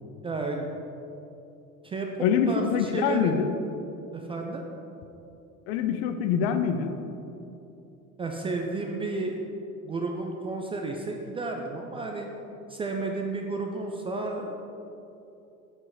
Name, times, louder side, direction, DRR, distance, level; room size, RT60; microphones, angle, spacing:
voice 1, 0.2-0.7 1.8-2.1 2.5-3.4 4.1-4.7 8.2-9.4 9.8-12.3 12.7-14.6, right 3 dB, 15° right, 1 dB, 0.4 m, -32 dB
voice 2, 2.2-3.5 5.7-7.0, left 7 dB, 50° left, 8 dB, 0.6 m, -25 dB
7.5 x 4.7 x 4.9 m, 2.8 s
figure-of-eight pair, 65°, 43 cm